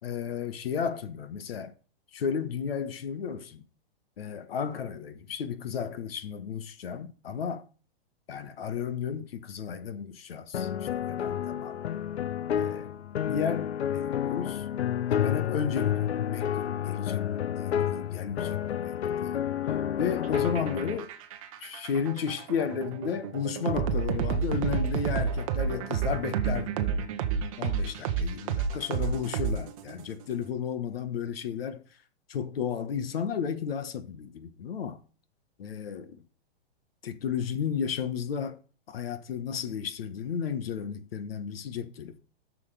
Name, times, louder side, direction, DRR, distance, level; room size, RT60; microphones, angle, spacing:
voice 1, 0.0-1.7 2.1-3.6 4.2-7.6 8.3-11.8 12.5-12.9 13.2-14.7 15.1-19.5 20.0-21.1 21.6-27.1 27.6-32.0 32.3-35.0 35.6-36.2 37.0-38.6 38.9-42.2, left 7 dB, 65° left, 1.5 m, -33 dB
sound 1, 10.5-21.0, left 9 dB, 80° left, 0.8 m, -30 dB
sound 2, 20.2-30.0, right 6 dB, 30° right, 0.9 m, -30 dB
12.5 x 6.9 x 3.5 m
hypercardioid pair, 165°, 32 cm